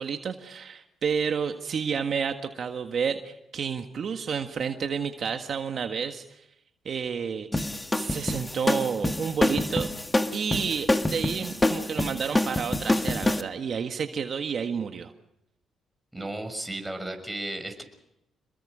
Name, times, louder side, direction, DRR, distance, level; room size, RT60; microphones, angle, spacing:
voice 1, 0.0-6.5 6.9-7.5 7.9-9.9 10.3-15.1, right 6 dB, 55° right, 5 dB, 1.6 m, -30 dB
sound 1, 7.5-13.4, left 1 dB, 15° left, 1.7 m, -26 dB
voice 2, 16.1-17.8, right 1 dB, 5° right, 5 dB, 6.3 m, -34 dB
27.5 x 21.5 x 5.1 m, 0.82 s
cardioid pair, 90°, 0 cm